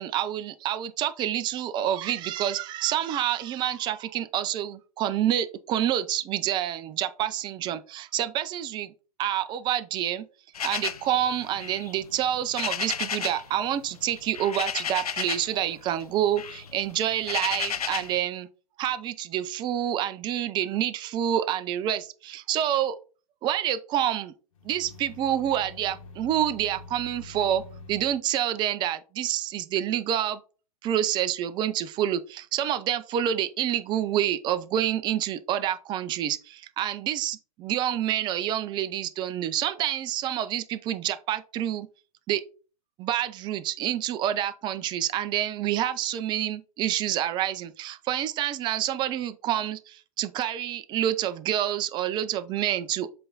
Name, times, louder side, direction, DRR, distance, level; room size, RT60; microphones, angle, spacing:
voice 1, 0.0-8.9 9.2-10.3 10.6-18.5 18.8-23.0 23.4-24.3 24.6-27.6 27.9-30.4 30.8-41.9 42.3-42.4 43.0-53.1, right 11 dB, 25° right, 0.5 m, -28 dB
sound 1, 10.5-13.5 13.8-15.6 15.9-18.2, left 7 dB, 75° left, 0.6 m, -33 dB
sound 2, 24.5-28.2, left 3 dB, 60° left, 1.7 m, -46 dB
7.6 x 3.3 x 3.9 m
figure-of-eight pair, 105°, 19 cm